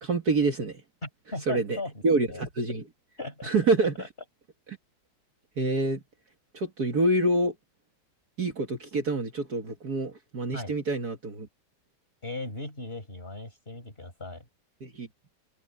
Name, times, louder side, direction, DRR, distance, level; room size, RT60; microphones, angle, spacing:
voice 1, 0.0-0.8 1.5-1.8 2.0-2.9 3.4-3.9 5.6-6.0 6.5-7.5 8.4-11.5 14.8-15.1, right 2 dB, 50° right, 2.3 m, -26 dB
voice 2, 1.0-1.9 2.3-2.4 3.2-3.5 4.0-4.1 10.5-10.7 12.2-14.5, left 2 dB, 25° left, 6.2 m, -37 dB
open air
omnidirectional pair, 2.2 m